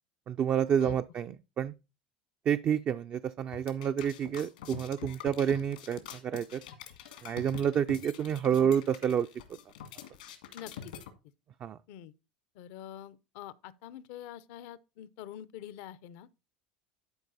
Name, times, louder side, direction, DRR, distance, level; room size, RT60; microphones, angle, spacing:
voice 1, 0.3-1.7 2.5-6.6 7.2-9.3 11.6-11.8, right 8 dB, 40° right, 0.4 m, -29 dB
sound 1, 3.5-11.1, left 9 dB, 85° left, 1.8 m, -45 dB
voice 2, 10.5-10.9 11.9-12.1 12.5-16.4, left 11 dB, 70° left, 0.6 m, -46 dB
11.5 x 4.6 x 4.1 m
hypercardioid pair, 80°, 4 cm